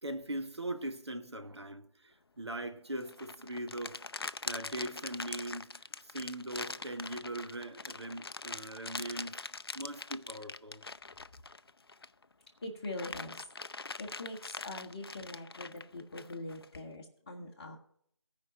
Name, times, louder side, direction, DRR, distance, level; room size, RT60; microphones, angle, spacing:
voice 1, 0.0-4.0 4.4-9.4 9.7-10.8, right 1 dB, 65° right, 1.2 m, -40 dB
sound 1, 3.0-12.2 12.6-16.8, left 3 dB, 55° left, 0.5 m, -43 dB
voice 2, 12.6-17.8, left 2 dB, 20° left, 1.0 m, -43 dB
15.5 x 5.2 x 5.9 m
figure-of-eight pair, 160°, 15 cm